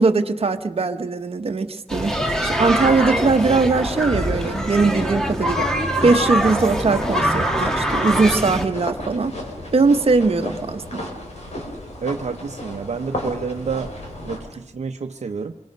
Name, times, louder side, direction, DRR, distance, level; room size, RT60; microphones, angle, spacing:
voice 1, 0.0-5.7 6.0-9.4 9.7-11.0, right 4 dB, 55° right, 6 dB, 1.2 m, -20 dB
sound 1, 1.9-14.4, left 1 dB, 65° left, 5.2 m, -34 dB
sound 2, 1.9-8.7, equal, 5° left, 2.0 m, -23 dB
voice 2, 12.0-13.9 14.2-15.5, right 5 dB, 70° right, 4 dB, 0.9 m, -29 dB
27.0 x 24.5 x 5.4 m, 0.99 s
wide cardioid pair, 115°, 12 cm